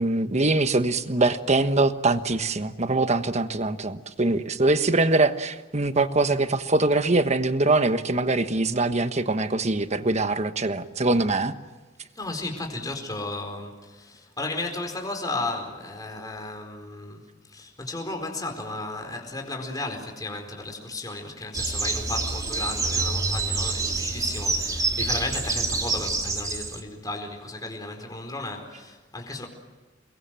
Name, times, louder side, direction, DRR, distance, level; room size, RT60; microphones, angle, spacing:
voice 1, 0.0-11.5, right 2 dB, 35° right, 1.3 m, -23 dB
voice 2, 12.1-17.2 17.5-29.5, left 2 dB, 20° left, 4.5 m, -34 dB
sound 1, 21.5-26.8, right 3 dB, 20° right, 2.4 m, -27 dB
29.5 x 22.5 x 7.6 m
head